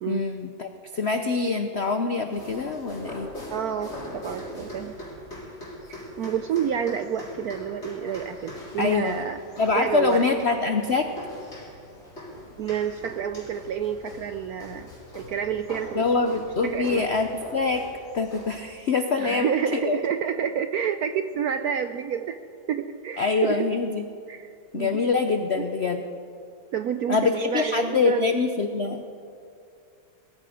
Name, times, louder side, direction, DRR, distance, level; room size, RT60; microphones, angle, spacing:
voice 1, 0.1-3.3 8.8-9.3 9.6-11.1 15.9-17.8 18.1-20.0 23.2-24.0 24.7-26.0 27.1-29.0, left 4 dB, 70° left, 7 dB, 0.6 m, -25 dB
sound 1, 2.3-18.6, left 1 dB, 35° left, 3.8 m, -41 dB
voice 2, 3.5-4.9 5.9-9.4 9.7-10.2 12.6-14.9 15.1-16.4 16.6-17.1 19.2-22.4 22.7-23.7 24.3-25.0 25.6-25.7 26.7-28.3, right 8 dB, 75° right, 9 dB, 0.8 m, -29 dB
20.5 x 14.0 x 5.0 m, 2.4 s
omnidirectional pair, 2.1 m